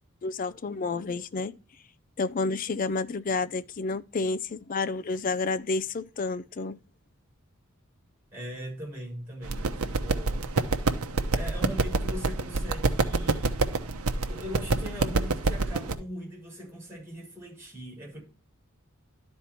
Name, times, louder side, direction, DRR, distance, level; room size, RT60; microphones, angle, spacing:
voice 1, 0.2-1.5 2.2-6.7, left 3 dB, 40° left, 0.4 m, -30 dB
voice 2, 8.3-10.5 11.3-13.5 14.3-18.2, equal, 10° right, 4.5 m, -40 dB
sound 1, 9.4-15.9, right 3 dB, 85° right, 0.8 m, -27 dB
11.5 x 4.3 x 4.4 m
head